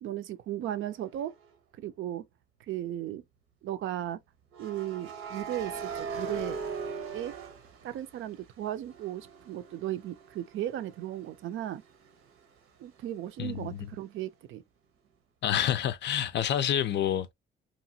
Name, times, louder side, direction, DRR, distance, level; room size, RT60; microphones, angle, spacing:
voice 1, 0.0-1.3 1.8-2.3 2.7-3.2 3.6-4.2 4.6-6.6 7.1-7.3 7.8-11.8 12.8-14.6, right 12 dB, 70° right, 0.5 m, -36 dB
sound 1, 1.2-1.5 4.5-8.4 8.8-12.4, right 5 dB, 90° right, 0.8 m, -40 dB
voice 2, 13.4-13.8 15.4-17.3, left 10 dB, 60° left, 0.4 m, -28 dB
2.9 x 2.4 x 2.7 m
cardioid pair, 135°, 21 cm